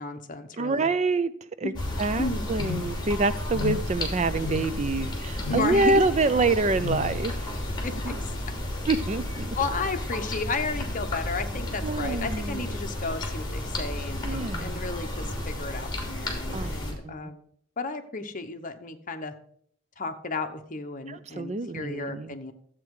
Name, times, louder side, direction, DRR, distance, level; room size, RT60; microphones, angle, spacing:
voice 1, 0.0-0.9 1.6-1.7 2.2-2.5 5.5-6.0 7.8-8.3 8.8-8.9 9.6-17.4 17.8-19.3 20.0-22.5, left 3 dB, 40° left, 7 dB, 1.0 m, -33 dB
voice 2, 0.6-1.3 1.6-1.7 2.0-7.6 8.0-8.2 8.9-9.6 11.8-12.6 14.2-14.8 16.5-16.7 17.0-17.2 21.1-22.3, right 3 dB, 35° right, 14 dB, 0.4 m, -26 dB
sound 1, 1.7-16.9, left 1 dB, 20° left, 2.7 m, -32 dB
sound 2, 2.6-3.1 3.5-4.0 4.4-4.9 5.4-5.8 6.8-7.2, left 8 dB, 80° left, 0.3 m, -34 dB
12.5 x 8.2 x 4.8 m, 0.65 s
head